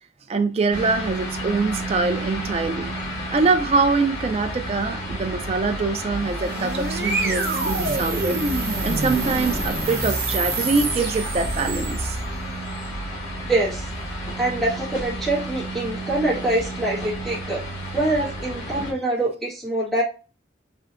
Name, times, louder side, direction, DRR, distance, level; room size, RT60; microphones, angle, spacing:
voice 1, 0.3-2.9 3.3-8.4 8.8-12.2 18.8-18.9, right 4 dB, 35° right, 0.3 m, -24 dB
sound 1, 0.7-18.9, right 1 dB, 85° left, 1.4 m, -31 dB
sound 2, 6.1-12.4, right 2 dB, 55° right, 0.7 m, -27 dB
voice 2, 13.5-13.9 14.4-17.6 17.9-20.0, right 2 dB, ahead, 1.4 m, -24 dB
3.3 x 2.6 x 2.4 m
head